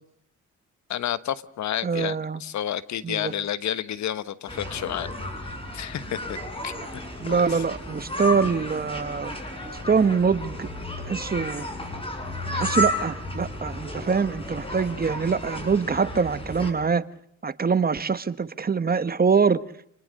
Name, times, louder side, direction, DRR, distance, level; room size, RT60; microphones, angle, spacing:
voice 1, 0.9-5.1 5.7-6.4 6.6-6.7 7.2-7.6, left 10 dB, 65° left, 14 dB, 1.3 m, -30 dB
voice 2, 1.8-2.4 3.0-3.3 7.2-9.3 9.9-10.7 11.0-11.7 12.5-17.0 17.4-19.6, right 5 dB, 30° right, 13 dB, 1.4 m, -24 dB
sound 1, 4.5-16.7, left 1 dB, 20° left, 7.7 m, -32 dB
29.5 x 20.5 x 6.6 m, 0.67 s
cardioid pair, 90°, 30 cm